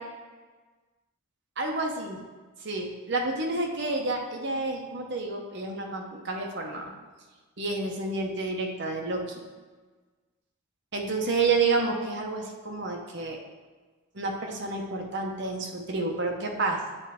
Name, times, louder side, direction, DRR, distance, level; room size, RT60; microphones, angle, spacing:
voice 1, 1.6-2.2 2.6-6.9 7.6-9.4 10.9-13.4 14.1-16.8, right 3 dB, 55° right, 2 dB, 0.9 m, -29 dB
8.1 x 4.3 x 3.6 m, 1.3 s
head